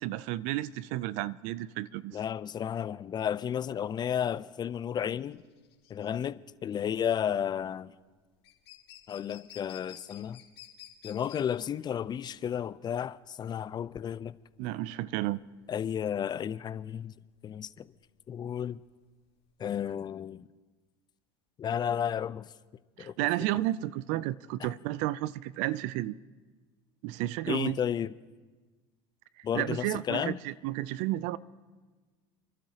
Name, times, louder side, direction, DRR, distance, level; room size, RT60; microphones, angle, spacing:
voice 1, 0.0-2.2 14.6-15.4 23.0-26.1 27.0-27.8 29.5-31.4, right 16 dB, 65° right, 0.5 m, -32 dB
voice 2, 2.1-5.4 5.9-7.9 9.1-10.4 11.0-14.3 15.7-17.1 17.4-17.9 18.3-18.8 19.6-20.5 21.6-22.5 23.0-23.1 24.6-24.7 27.5-28.1 29.4-30.4, left 9 dB, 35° left, 0.4 m, -32 dB
sound 1, 3.4-19.6, left 11 dB, 85° left, 2.3 m, -54 dB
29.5 x 12.0 x 2.9 m
supercardioid pair, 90°, 13 cm